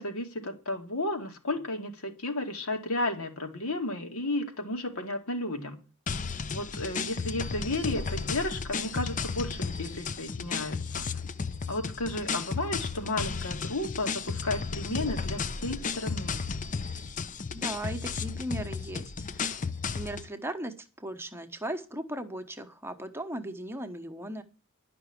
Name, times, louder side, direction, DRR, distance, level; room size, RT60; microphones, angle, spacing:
voice 1, 0.0-5.8 6.5-11.1 11.7-16.4, left 2 dB, 75° left, 4 dB, 2.4 m, -33 dB
sound 1, 6.1-20.3, left 5 dB, 35° left, 0.6 m, -34 dB
voice 2, 17.5-19.5 19.9-24.4, right 1 dB, 10° right, 7 dB, 1.1 m, -37 dB
11.0 x 6.0 x 9.0 m, 0.35 s
head